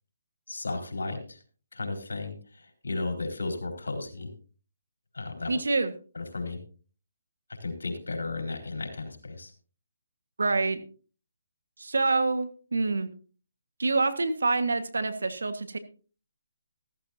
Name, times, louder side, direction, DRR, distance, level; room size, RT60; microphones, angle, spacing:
voice 1, 0.5-1.4 1.7-4.3 5.1-5.6 6.1-6.6 7.6-9.5, left 3 dB, 85° left, 4 dB, 4.3 m, -34 dB
voice 2, 5.5-5.9 10.4-10.8 11.8-13.1 13.8-15.8, right 3 dB, 80° right, 10 dB, 1.7 m, -26 dB
14.5 x 14.0 x 2.8 m, 0.38 s
hypercardioid pair, 150°, 0 cm